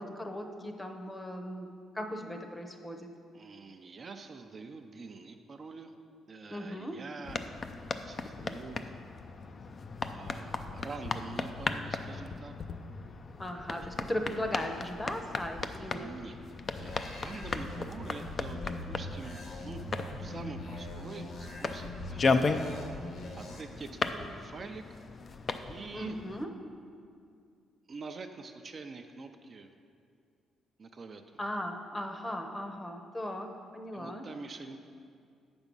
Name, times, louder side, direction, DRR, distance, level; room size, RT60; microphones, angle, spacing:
voice 1, 0.0-3.1 6.5-7.0 13.4-16.1 25.9-26.5 31.4-34.2, equal, 15° left, 5 dB, 0.8 m, -37 dB
voice 2, 3.3-5.9 6.3-7.4 8.0-9.0 10.1-12.5 15.5-16.4 16.8-22.6 23.4-25.0 25.7-26.2 27.9-29.7 30.8-31.4 33.9-34.8, right 4 dB, 40° right, 5 dB, 0.5 m, -46 dB
sound 1, 7.2-26.4, left 4 dB, 40° left, 0.4 m, -36 dB
sound 2, 16.8-23.6, left 1 dB, 65° left, 1.2 m, -43 dB
8.0 x 6.1 x 5.4 m, 2.3 s
cardioid pair, 90°, 0 cm